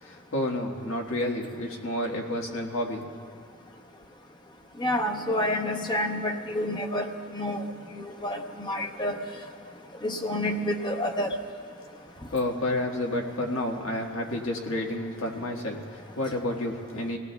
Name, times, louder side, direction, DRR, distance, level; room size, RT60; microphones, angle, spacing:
voice 1, 0.0-3.0 12.3-17.2, left 1 dB, 90° left, 0 dB, 1.6 m, -30 dB
voice 2, 4.8-7.6 8.0-9.2 10.0-11.4, left 1 dB, 20° left, 3 dB, 0.8 m, -29 dB
26.0 x 17.5 x 2.3 m, 2.1 s
head